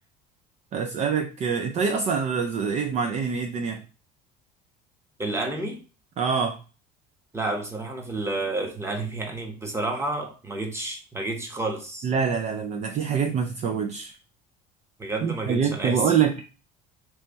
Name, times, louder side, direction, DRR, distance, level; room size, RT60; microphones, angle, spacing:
voice 1, 0.7-3.8 6.2-6.6 12.0-14.1 15.2-16.5, right 6 dB, 40° right, 6 dB, 0.4 m, -25 dB
voice 2, 5.2-5.8 7.3-12.1 15.0-16.1, right 2 dB, 15° right, 3 dB, 1.1 m, -30 dB
3.3 x 3.2 x 4.0 m, 0.35 s
supercardioid pair, 105°, 19 cm